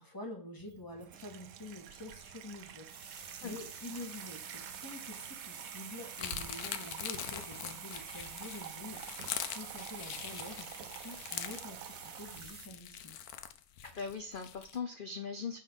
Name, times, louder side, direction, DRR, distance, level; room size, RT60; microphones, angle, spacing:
voice 1, 0.0-13.2, left 2 dB, 15° left, 1 dB, 1.8 m, -47 dB
Water tap faucet / Sink (filling or washing), 0.6-12.8, right 9 dB, 70° right, 1.1 m, -48 dB
sound 1, 2.8-12.7, right 5 dB, 35° right, 0.7 m, -50 dB
sound 2, 6.2-14.8, left 10 dB, 85° left, 1.2 m, -43 dB
voice 2, 13.8-15.6, left 5 dB, 50° left, 7 dB, 0.6 m, -40 dB
8.9 x 4.0 x 5.5 m, 0.41 s
omnidirectional pair, 1.6 m